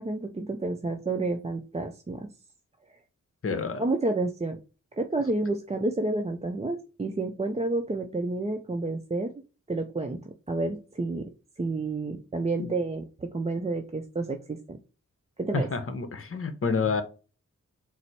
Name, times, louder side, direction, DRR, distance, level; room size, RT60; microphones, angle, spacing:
voice 1, 0.0-2.3 3.8-4.6 5.0-9.3 9.7-11.3 11.6-14.8 15.4-15.7, right 2 dB, 20° right, 0.5 m, -30 dB
voice 2, 3.4-3.8 12.6-12.7 15.5-17.0, left 4 dB, 45° left, 0.8 m, -28 dB
4.0 x 2.0 x 4.4 m
cardioid pair, 40°, 33 cm